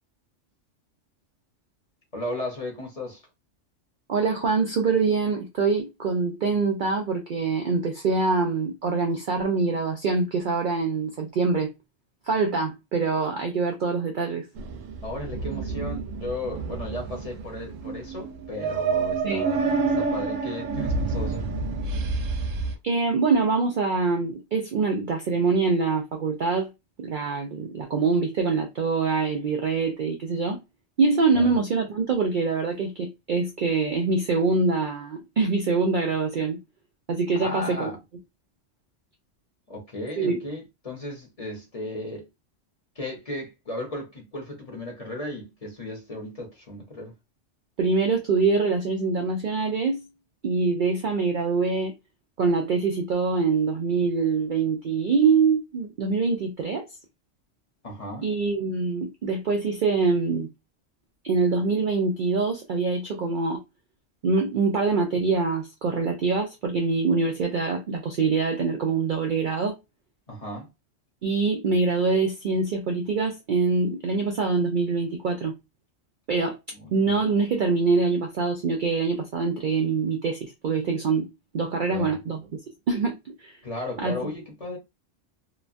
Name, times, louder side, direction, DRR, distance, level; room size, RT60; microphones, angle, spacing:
voice 1, 2.1-3.2 15.0-21.4 31.3-31.5 37.4-38.0 39.7-42.3 43.0-47.1 57.8-58.3 70.3-70.7 76.7-77.1 81.9-82.1 83.6-84.8, left 1 dB, 35° left, 0.8 m, -35 dB
voice 2, 4.1-11.7 12.3-14.4 19.2-19.5 22.8-26.7 27.0-30.6 31.0-36.6 37.1-37.9 40.2-40.4 47.8-50.0 50.4-51.9 52.4-56.8 58.2-60.5 61.2-63.6 64.2-69.8 71.2-75.5 76.3-76.6 76.9-82.4 82.9-83.6 84.0-84.2, right 4 dB, 60° right, 0.5 m, -24 dB
sound 1, 14.6-22.7, right 4 dB, 90° right, 1.0 m, -28 dB
2.9 x 2.2 x 2.5 m
omnidirectional pair, 1.3 m